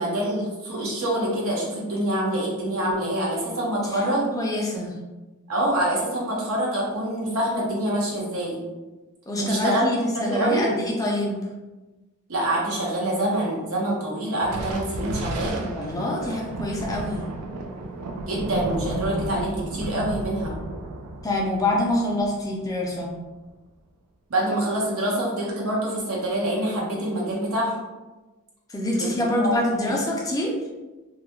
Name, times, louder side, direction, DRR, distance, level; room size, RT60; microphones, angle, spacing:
voice 1, 0.0-4.3 5.5-8.6 9.4-10.7 12.3-15.7 18.3-20.5 24.3-27.8 28.9-29.1 29.4-29.5 29.8-29.9, right 1 dB, 70° right, -4 dB, 0.8 m, -26 dB
voice 2, 3.8-4.9 9.3-11.4 15.6-17.3 21.2-23.1 28.7-30.5, left 1 dB, 15° left, -2 dB, 0.3 m, -26 dB
Thunder, 14.4-23.2, right 2 dB, 90° right, 0.4 m, -33 dB
2.3 x 2.1 x 2.9 m, 1.2 s
head